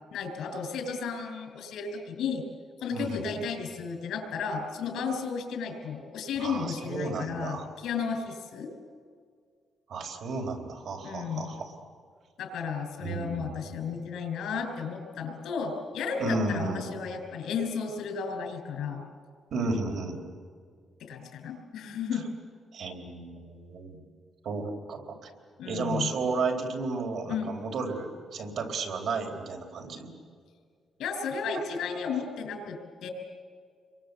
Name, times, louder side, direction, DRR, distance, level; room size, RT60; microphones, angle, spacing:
voice 1, 0.1-2.4 2.8-8.7 11.0-11.5 12.4-19.1 21.0-22.3 25.6-26.1 27.3-27.5 31.0-33.1, left 5 dB, 85° left, 5 dB, 5.7 m, -33 dB
voice 2, 2.9-3.4 6.4-7.7 9.9-11.7 13.0-13.8 16.2-16.9 19.5-20.2 22.7-24.0 24.4-25.3 25.6-30.1 31.5-31.6, right 3 dB, 55° right, 2 dB, 4.1 m, -33 dB
28.5 x 23.5 x 8.1 m, 2.1 s
cardioid pair, 175°, 0 cm